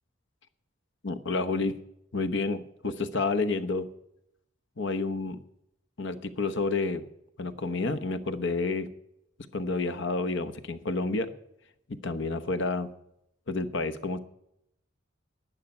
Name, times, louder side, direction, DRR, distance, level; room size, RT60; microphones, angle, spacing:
voice 1, 1.0-1.8 2.1-3.9 4.8-5.4 6.0-7.1 7.4-8.9 9.5-11.3 12.0-12.9 13.5-14.2, left 3 dB, 65° left, 12 dB, 1.0 m, -29 dB
11.5 x 6.8 x 9.6 m, 0.78 s
head